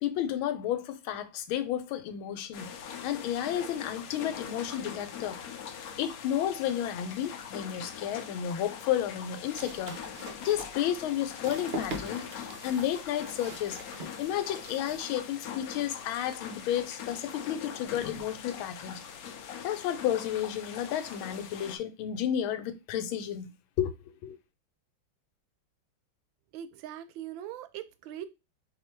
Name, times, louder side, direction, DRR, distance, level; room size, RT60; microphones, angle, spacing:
voice 1, 0.0-2.7 3.0-5.4 6.0-19.0 19.6-23.9 24.2-24.4, left 10 dB, 90° left, 1.5 m, -32 dB
sound 1, 2.5-21.8, left 8 dB, 70° left, 0.8 m, -42 dB
sound 2, 8.9-15.0, right 1 dB, 55° right, 0.6 m, -43 dB
voice 2, 26.5-28.3, right 11 dB, 80° right, 1.3 m, -41 dB
4.4 x 2.6 x 4.3 m
omnidirectional pair, 2.2 m